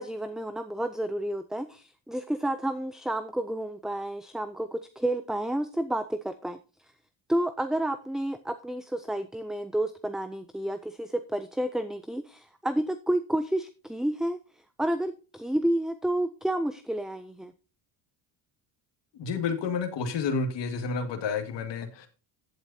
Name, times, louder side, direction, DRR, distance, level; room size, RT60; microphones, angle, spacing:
voice 1, 0.0-6.6 7.3-14.4 14.8-17.5, right 1 dB, ahead, 10 dB, 0.4 m, -30 dB
voice 2, 19.2-22.1, left 5 dB, 65° left, 7 dB, 2.0 m, -30 dB
15.0 x 8.1 x 2.7 m, 0.34 s
cardioid pair, 105°, 47 cm